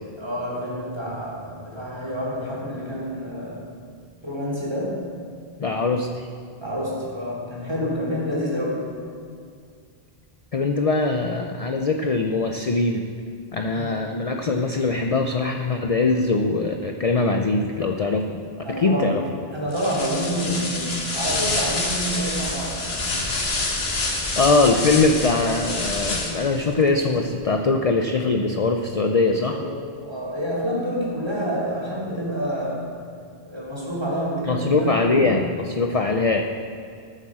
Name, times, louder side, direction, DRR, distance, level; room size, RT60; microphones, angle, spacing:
voice 1, 0.2-3.7 4.2-5.1 6.6-8.9 13.7-13.9 18.6-19.2 19.5-22.9 29.3-32.9 33.4-35.0 35.8-36.0, equal, 25° right, -6 dB, 3.6 m, -28 dB
voice 2, 5.6-6.3 10.5-13.0 13.5-18.4 18.8-19.2 24.4-29.6 34.5-36.4, left 3 dB, 40° left, 4 dB, 0.6 m, -22 dB
sound 1, 19.7-26.6, left 2 dB, 75° left, 1.7 m, -27 dB
19.5 x 7.2 x 4.8 m, 2.3 s
omnidirectional pair, 1.0 m